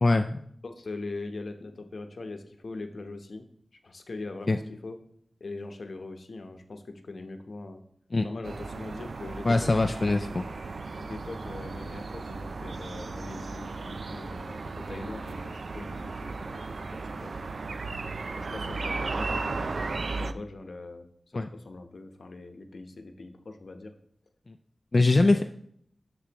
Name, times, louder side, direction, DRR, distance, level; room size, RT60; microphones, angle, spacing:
voice 1, 0.0-0.4 4.5-4.6 8.1-8.3 9.4-10.4 21.3-21.5 24.9-25.4, left 2 dB, 45° left, 6 dB, 0.4 m, -22 dB
voice 2, 0.6-3.5 3.8-5.0 5.4-7.8 8.2-10.4 10.9-16.6 16.9-17.3 18.4-21.1 21.3-23.9 25.3-25.4, left 2 dB, 70° left, 6 dB, 0.9 m, -41 dB
sound 1, 8.4-20.3, right 3 dB, 70° right, 0.4 m, -35 dB
10.0 x 6.9 x 3.0 m, 0.67 s
wide cardioid pair, 85°, 0 cm